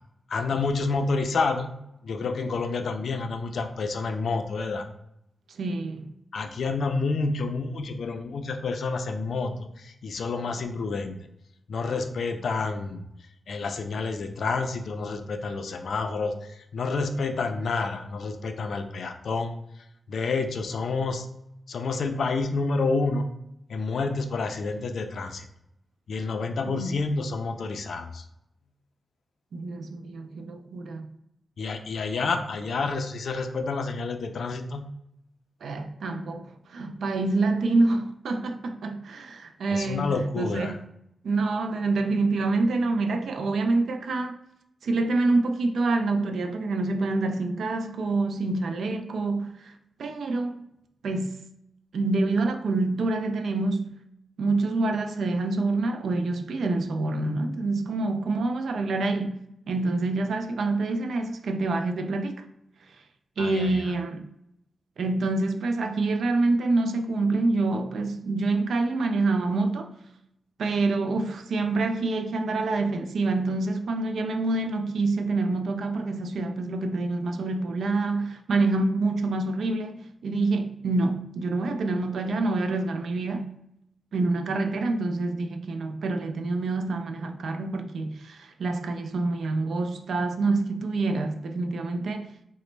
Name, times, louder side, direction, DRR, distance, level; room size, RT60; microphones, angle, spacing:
voice 1, 0.3-1.7 2.0-4.9 6.3-11.1 11.7-13.0 13.5-19.5 20.1-21.3 21.7-23.3 23.7-25.5 26.1-28.2 31.6-34.8 39.7-40.8 63.4-63.7, left 3 dB, 70° left, 0.3 m, -29 dB
voice 2, 5.5-6.1 26.7-27.0 29.5-31.1 35.6-40.8 41.2-44.4 44.8-49.7 50.0-50.6 51.0-51.4 51.9-53.9 54.4-62.4 63.4-64.2 65.0-69.9 70.6-83.5 84.1-92.3, right 3 dB, 85° right, 0.3 m, -27 dB
3.9 x 2.0 x 3.2 m
wide cardioid pair, 135°, 0 cm